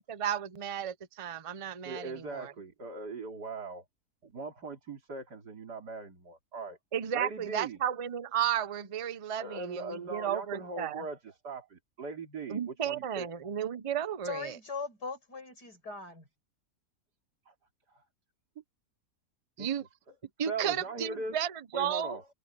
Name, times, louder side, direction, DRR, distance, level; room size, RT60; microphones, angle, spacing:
voice 1, 0.0-2.5 6.9-11.0 12.5-14.6 19.6-19.8 20.4-22.2, right 9 dB, 35° right, 0.5 m, -33 dB
voice 2, 1.9-3.8 4.2-6.8 7.1-7.8 9.4-13.3 17.5-17.6 17.9-18.1 19.6-19.7 20.4-21.4 21.7-22.3, right 3 dB, 80° right, 3.7 m, -40 dB
voice 3, 14.2-16.2, left 4 dB, 80° left, 6.4 m, -39 dB
omnidirectional pair, 1.7 m